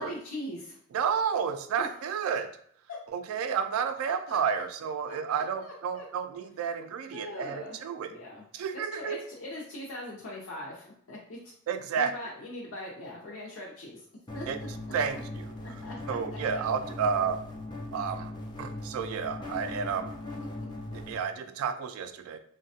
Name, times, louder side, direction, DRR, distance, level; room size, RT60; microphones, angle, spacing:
voice 1, 0.0-0.8 1.7-1.9 4.0-4.6 5.0-6.0 7.1-7.8 8.1-8.4 8.7-11.4 11.9-14.0 14.3-14.5 15.6-16.2, left 1 dB, 80° left, -3 dB, 0.5 m, -41 dB
voice 2, 0.9-2.5 3.1-8.1 8.5-9.2 11.7-12.1 14.5-14.6 14.9-15.4 16.1-17.4 17.9-18.3 18.6-20.1 20.9-22.4, right 6 dB, 85° right, 9 dB, 0.3 m, -31 dB
sound 1, 14.3-21.1, left 1 dB, 20° left, 0.5 m, -39 dB
3.1 x 2.2 x 2.7 m, 0.65 s
head